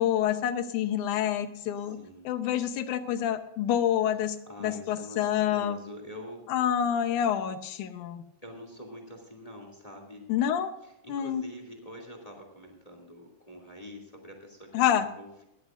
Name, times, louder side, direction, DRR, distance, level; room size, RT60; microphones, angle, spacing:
voice 1, 0.0-2.0 2.2-5.8 6.5-8.2 10.3-10.7 11.1-11.4 14.7-15.1, left 10 dB, 75° left, 9 dB, 2.3 m, -27 dB
voice 2, 1.8-2.3 4.2-6.4 8.4-10.3 10.8-15.4, equal, 10° left, 3 dB, 2.2 m, -46 dB
19.0 x 13.5 x 2.5 m, 0.84 s
omnidirectional pair, 3.7 m